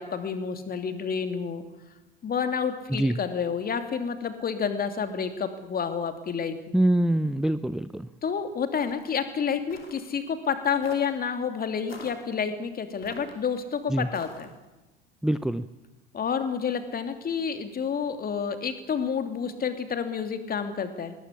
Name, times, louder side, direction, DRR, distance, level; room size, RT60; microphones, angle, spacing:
voice 1, 0.0-1.6 2.2-6.5 8.2-14.5 16.1-21.1, left 6 dB, 30° left, 8 dB, 3.0 m, -29 dB
voice 2, 6.7-8.1 13.9-14.1 15.2-15.7, right 1 dB, ahead, 14 dB, 0.6 m, -24 dB
sound 1, 8.8-9.1 9.7-10.0 10.8-11.2 11.9-12.2 13.0-13.6 14.1-14.6, left 3 dB, 90° left, 3.0 m, -45 dB
21.0 x 19.5 x 8.5 m, 1.1 s
figure-of-eight pair, 70°, 29 cm